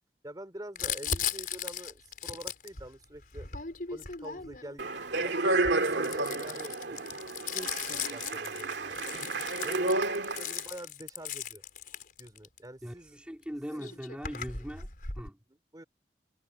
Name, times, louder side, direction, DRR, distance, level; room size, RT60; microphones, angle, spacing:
voice 1, 0.2-3.5 3.9-7.1 7.5-9.2 9.6-11.6 12.2-13.2 13.5-14.0 15.5-15.8, right 1 dB, 20° right, 3.5 m, -46 dB
Crumpling crinkling, 0.8-4.8 5.5-12.6 13.4-13.5 13.7-15.3, left 7 dB, 55° left, 5.0 m, -37 dB
Speech, 4.8-10.6, right 2 dB, 85° right, 2.3 m, -31 dB
voice 2, 12.8-15.4, equal, 5° right, 2.9 m, -41 dB
head